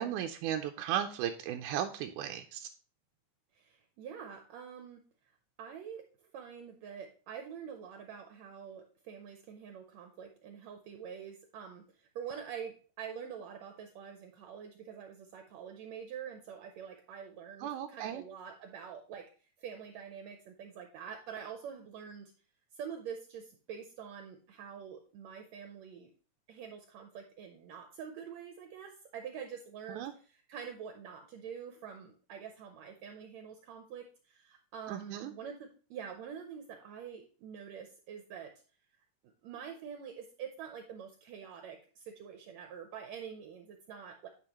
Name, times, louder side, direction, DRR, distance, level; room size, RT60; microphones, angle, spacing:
voice 1, 0.0-2.7 17.6-18.2 30.0-30.1 34.9-35.3, right 10 dB, 90° right, 5 dB, 2.1 m, -35 dB
voice 2, 3.5-5.0 5.6-19.3 19.6-22.3 22.8-26.1 26.5-38.5 39.4-44.3, right 7 dB, 75° right, 5 dB, 1.8 m, -46 dB
9.7 x 5.0 x 2.9 m, 0.39 s
omnidirectional pair, 3.5 m